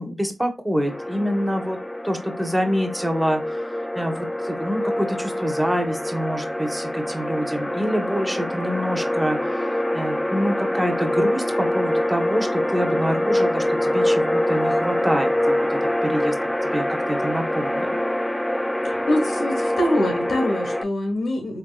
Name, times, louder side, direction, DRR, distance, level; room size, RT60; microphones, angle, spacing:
voice 1, 0.0-1.8 2.0-3.4 3.9-9.4 9.9-16.3 16.7-18.0, equal, 10° right, 0.9 m, -26 dB
sound 1, 0.9-20.8, left 1 dB, 10° left, 0.4 m, -25 dB
voice 2, 18.8-21.6, left 1 dB, 85° left, 1.0 m, -24 dB
3.5 x 3.3 x 2.3 m
cardioid pair, 45°, 0 cm